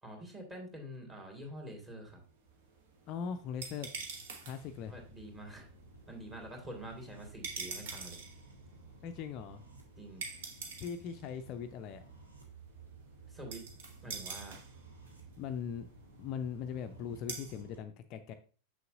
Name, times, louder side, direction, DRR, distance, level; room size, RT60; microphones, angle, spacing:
voice 1, 0.0-2.2 4.8-5.7 6.1-8.2 10.0-10.4 13.3-13.6 14.0-14.6, right 1 dB, 15° right, 1 dB, 2.2 m, -46 dB
sound 1, 2.3-17.6, right 5 dB, 55° right, 1.2 m, -48 dB
voice 2, 3.1-3.9 4.4-4.9 9.0-9.6 10.8-12.0 15.4-15.8 16.2-18.3, left 7 dB, 40° left, 8 dB, 0.4 m, -40 dB
sound 2, 4.6-17.8, right 3 dB, 80° right, 1.5 m, -55 dB
6.6 x 6.4 x 2.6 m, 0.37 s
figure-of-eight pair, 90°, 0 cm